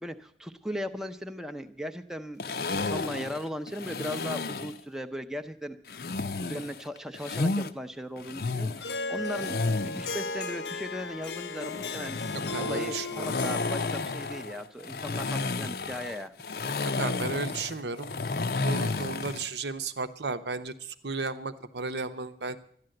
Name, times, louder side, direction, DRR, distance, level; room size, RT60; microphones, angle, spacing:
voice 1, 0.0-6.0 6.4-12.2 12.6-16.3, equal, 5° right, 7 dB, 0.6 m, -38 dB
sound 1, 2.4-4.8 5.9-7.7 8.2-10.2 11.6-19.5, left 3 dB, 55° left, 0.6 m, -32 dB
Harp, 8.8-14.6, left 3 dB, 80° left, 0.9 m, -36 dB
voice 2, 12.5-13.3 16.8-18.1 18.6-22.6, right 3 dB, 75° right, 10 dB, 0.9 m, -34 dB
12.5 x 10.5 x 7.8 m, 0.62 s
head